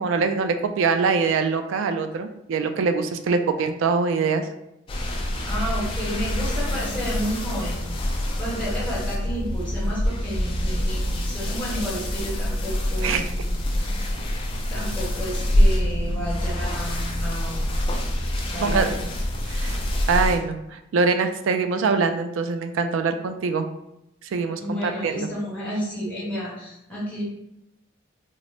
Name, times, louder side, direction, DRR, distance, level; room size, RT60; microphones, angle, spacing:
voice 1, 0.0-4.5 13.0-13.3 18.6-19.0 19.5-19.8 20.1-23.6 24.3-25.3, right 4 dB, 70° right, 8 dB, 0.3 m, -23 dB
sound 1, 4.9-20.4, left 1 dB, 25° left, 0.4 m, -25 dB
voice 2, 5.4-7.8 8.4-13.3 14.7-17.7 18.5-19.0 24.6-27.2, equal, 5° left, -7 dB, 1.0 m, -31 dB
3.7 x 2.0 x 3.2 m, 0.85 s
head